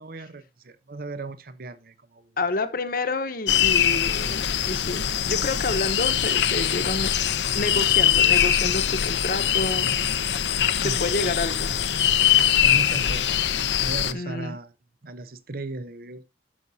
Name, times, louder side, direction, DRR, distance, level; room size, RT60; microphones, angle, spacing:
voice 1, 0.0-2.4 10.8-11.0 12.6-13.3 13.8-14.7 15.0-16.2, right 2 dB, 55° right, 0.8 m, -36 dB
voice 2, 2.4-7.1 7.5-10.3 10.8-11.7 14.1-14.6, left 2 dB, 55° left, 1.0 m, -29 dB
sound 1, 3.5-14.1, left 10 dB, 75° left, 0.7 m, -22 dB
13.5 x 6.1 x 2.7 m
head